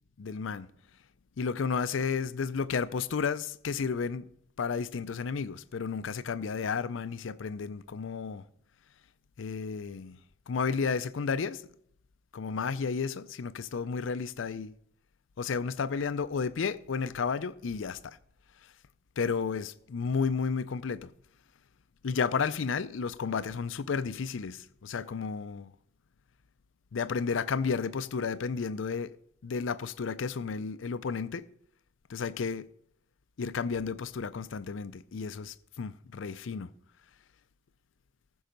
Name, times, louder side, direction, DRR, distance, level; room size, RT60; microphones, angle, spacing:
voice 1, 0.2-0.7 1.4-4.3 4.6-8.4 9.4-10.2 10.5-11.6 12.3-14.7 15.4-18.2 19.2-21.1 22.0-25.7 26.9-29.1 29.4-31.4 32.1-32.7 33.4-36.7, left 5 dB, 85° left, 0.5 m, -32 dB
14.5 x 6.2 x 5.2 m
head